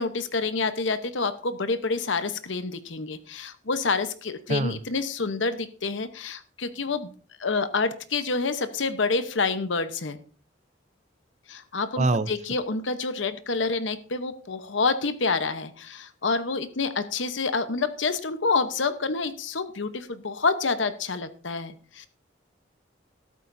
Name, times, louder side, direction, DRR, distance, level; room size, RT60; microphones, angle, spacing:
voice 1, 0.0-7.1 7.4-10.2 11.5-22.1, left 4 dB, 80° left, 11 dB, 1.0 m, -28 dB
voice 2, 4.5-4.8 12.0-12.3, right 3 dB, 40° right, 15 dB, 0.6 m, -24 dB
13.0 x 12.5 x 2.7 m, 0.41 s
head